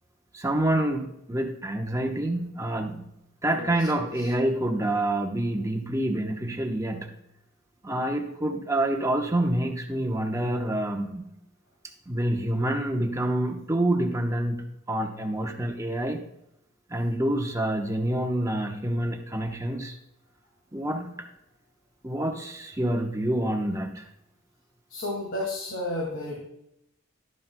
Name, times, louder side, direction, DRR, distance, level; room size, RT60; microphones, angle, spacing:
voice 1, 0.3-3.1 3.4-7.1 7.8-11.3 12.1-16.2 16.9-20.0 20.7-21.3 22.0-24.0, right 1 dB, 15° right, 3 dB, 1.0 m, -27 dB
voice 2, 24.9-26.4, left 1 dB, 55° left, -3 dB, 2.2 m, -31 dB
12.0 x 10.0 x 2.2 m, 0.81 s
head